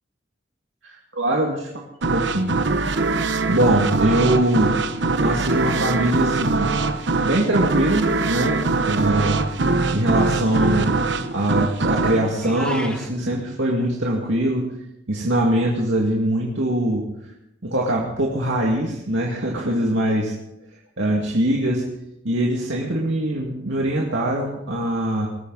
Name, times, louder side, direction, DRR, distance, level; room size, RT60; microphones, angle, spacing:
voice 1, 0.8-1.8 2.1-3.1 3.5-4.8 5.2-6.7 7.2-9.4 9.9-10.9 11.3-14.7 15.1-17.1 17.6-20.3 21.0-21.8 22.2-25.3, right 1 dB, 85° right, -2 dB, 2.3 m, -22 dB
sound 1, 2.0-13.5, right 3 dB, 65° right, 1.0 m, -23 dB
Meow, 12.3-13.1, left 1 dB, 5° left, 1.5 m, -35 dB
21.5 x 14.0 x 4.1 m, 0.85 s
head